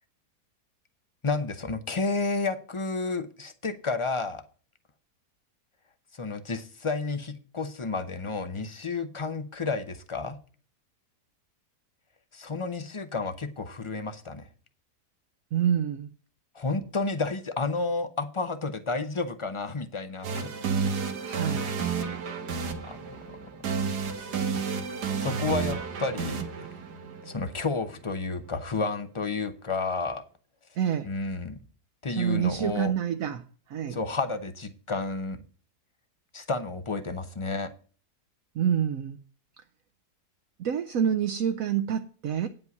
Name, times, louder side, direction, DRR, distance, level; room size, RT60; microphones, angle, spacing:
voice 1, 1.2-4.4 6.1-10.4 12.3-14.5 16.5-20.5 22.8-23.4 24.1-24.4 25.2-26.4 27.2-30.2 31.0-31.6 32.0-32.9 33.9-35.4 36.3-37.7, left 3 dB, 40° left, 0.4 m, -31 dB
voice 2, 15.5-16.1 21.2-21.7 30.8-31.1 32.1-34.0 38.6-39.2 40.6-42.5, right 8 dB, 65° right, 1.0 m, -27 dB
sound 1, 20.2-28.2, right 5 dB, 90° right, 1.8 m, -31 dB
9.4 x 5.3 x 7.0 m
omnidirectional pair, 1.7 m